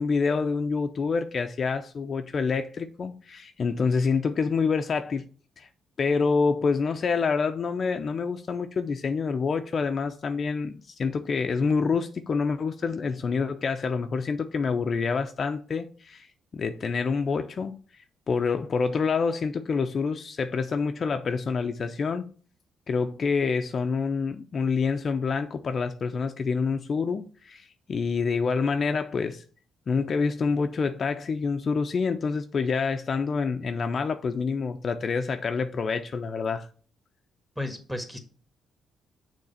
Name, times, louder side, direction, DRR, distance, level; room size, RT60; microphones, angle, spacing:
voice 1, 0.0-5.2 5.6-5.7 6.0-16.3 16.5-17.8 18.3-22.3 22.9-29.4 29.9-36.7, left 5 dB, 45° left, 0.5 m, -27 dB
voice 2, 37.6-38.2, left 1 dB, 5° right, 1.4 m, -33 dB
6.5 x 3.3 x 5.5 m
cardioid pair, 90°, 0 cm